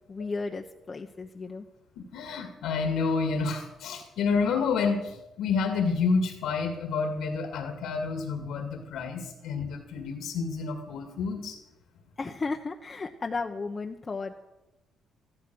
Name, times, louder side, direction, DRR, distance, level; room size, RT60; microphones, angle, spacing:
voice 1, 0.1-1.7 12.2-14.3, left 4 dB, 30° left, 3 dB, 0.9 m, -34 dB
voice 2, 2.0-11.6, left 5 dB, 85° left, 4 dB, 2.1 m, -29 dB
14.0 x 12.0 x 6.2 m, 0.97 s
cardioid pair, 90°, 0 cm